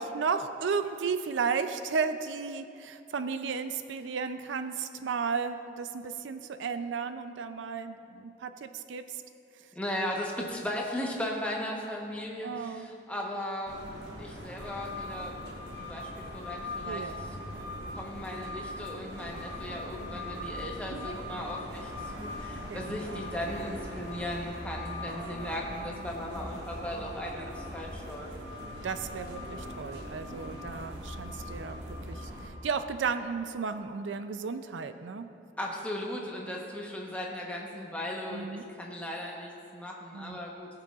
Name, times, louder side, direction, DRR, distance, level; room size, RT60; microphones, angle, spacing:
voice 1, 0.0-9.2 12.4-12.9 16.8-17.3 20.9-21.2 22.7-23.3 27.3-27.5 28.8-35.3 38.3-38.6 40.1-40.4, right 5 dB, 85° right, 10 dB, 0.4 m, -34 dB
voice 2, 9.7-15.5 15.8-17.1 17.9-28.3 35.6-40.7, left 1 dB, 5° left, -2 dB, 1.0 m, -37 dB
sound 1, 13.7-32.5, left 1 dB, 65° right, 1.6 m, -40 dB
19.0 x 6.6 x 2.4 m, 2.6 s
head